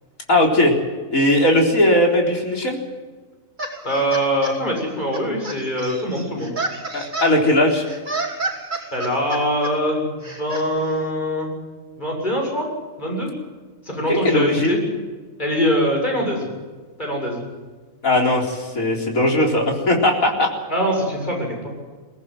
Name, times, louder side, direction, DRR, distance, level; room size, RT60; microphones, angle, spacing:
voice 1, 0.3-0.7 1.1-2.8 6.9-7.8 14.1-14.8 18.0-20.5, left 1 dB, 85° left, 1 dB, 4.4 m, -18 dB
sound 1, 3.6-4.5 5.1-7.3 7.9-9.7 10.2-10.7, right 2 dB, 35° right, 3.0 m, -30 dB
voice 2, 3.8-6.5 8.9-11.5 12.0-12.7 13.0-13.3 13.8-14.8 15.4-16.5 17.0-17.4 20.7-21.7, equal, 35° left, 0 dB, 7.3 m, -23 dB
22.5 x 18.0 x 7.9 m, 1.4 s
omnidirectional pair, 1.4 m